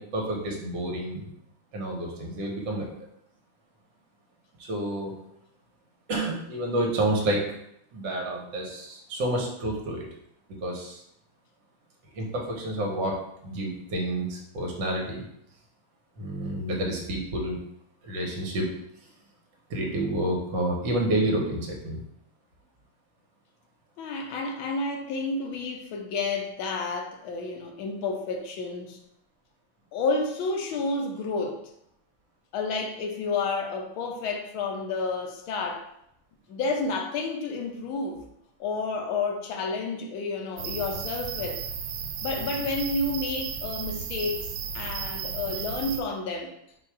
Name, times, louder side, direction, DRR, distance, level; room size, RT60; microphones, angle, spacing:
voice 1, 0.0-1.3 1.7-2.9 4.6-5.1 6.1-7.5 7.9-10.1 10.6-11.0 12.1-13.2 13.4-15.3 16.2-17.6 18.0-18.7 19.7-22.0, right 1 dB, 65° right, 0 dB, 1.5 m, -29 dB
voice 2, 24.0-29.0 29.9-31.6 32.5-35.9 36.5-38.2 38.6-41.6 42.2-46.5, left 3 dB, 75° left, 2 dB, 1.4 m, -30 dB
sound 1, 40.6-46.0, right 7 dB, 80° right, 1.4 m, -34 dB
4.4 x 2.3 x 4.6 m, 0.76 s
omnidirectional pair, 2.4 m